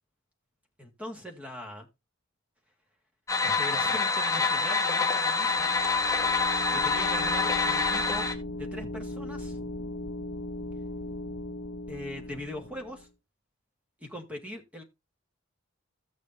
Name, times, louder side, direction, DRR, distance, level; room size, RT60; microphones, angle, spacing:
voice 1, 0.8-1.9 3.4-5.8 6.7-8.3 8.5-9.6 11.9-13.1 14.0-14.8, left 1 dB, 5° right, 2 dB, 1.7 m, -40 dB
sound 1, 3.3-8.3, left 4 dB, 15° left, 1.2 m, -26 dB
sound 2, 5.3-13.1, left 1 dB, 60° left, 0.8 m, -38 dB
16.0 x 6.5 x 2.6 m, 0.23 s
head